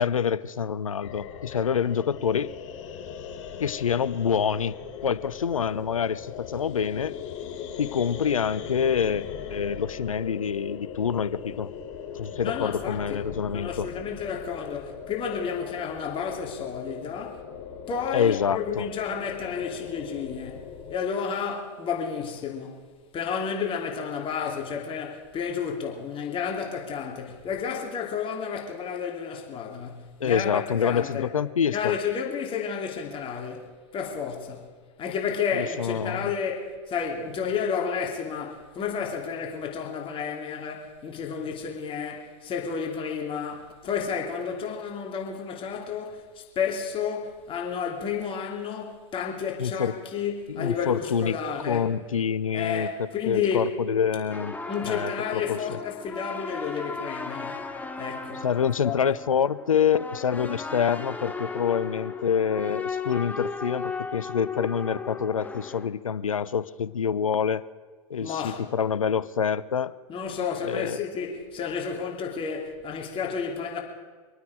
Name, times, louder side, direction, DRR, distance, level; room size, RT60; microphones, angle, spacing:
voice 1, 0.0-2.5 3.6-4.8 5.0-7.1 7.8-11.7 12.1-13.9 18.1-18.9 30.2-32.0 35.5-36.3 49.6-49.9 50.5-51.4 51.7-54.5 54.9-55.8 58.4-67.6 68.1-69.9 70.6-71.0, left 7 dB, 85° left, 0.6 m, -26 dB
Drone airy satan screech eery, 1.0-20.9, left 7 dB, 65° left, 4.0 m, -39 dB
voice 2, 12.4-13.2 13.5-17.4 17.9-22.8 23.1-31.3 31.7-34.7 35.0-51.9 52.5-53.8 54.7-57.6 58.0-58.5 58.8-59.0 68.2-68.6 70.1-73.8, left 6 dB, 30° left, 2.9 m, -31 dB
sound 1, 54.3-65.9, left 4 dB, 10° left, 1.2 m, -36 dB
25.5 x 9.3 x 4.9 m
hypercardioid pair, 95°, 17 cm